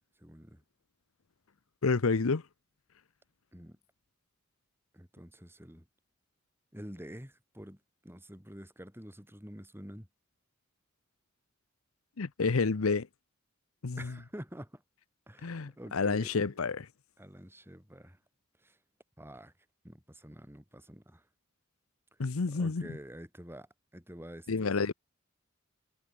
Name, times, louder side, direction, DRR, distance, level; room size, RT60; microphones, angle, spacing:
voice 1, 0.2-0.6 3.5-3.8 4.9-5.8 6.7-10.1 14.0-14.8 15.3-16.5 17.2-18.2 18.6-18.8 19.2-19.5 19.8-21.2 22.2-24.7, equal, 10° right, 7.8 m, -48 dB
voice 2, 1.8-2.4 12.2-13.1 13.8-14.1 15.4-16.9 22.2-22.9 24.5-24.9, left 4 dB, 80° left, 0.8 m, -29 dB
head